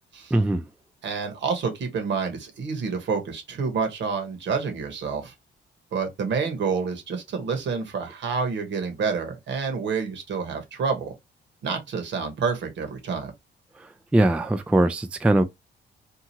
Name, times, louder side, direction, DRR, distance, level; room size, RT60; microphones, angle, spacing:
voice 1, 0.3-0.6 14.1-15.4, right 1 dB, 5° right, 0.3 m, -20 dB
voice 2, 1.0-5.3 5.9-11.1 11.6-13.3, right 5 dB, 65° right, 1.1 m, -28 dB
2.8 x 2.4 x 2.8 m
cardioid pair, 90°, 20 cm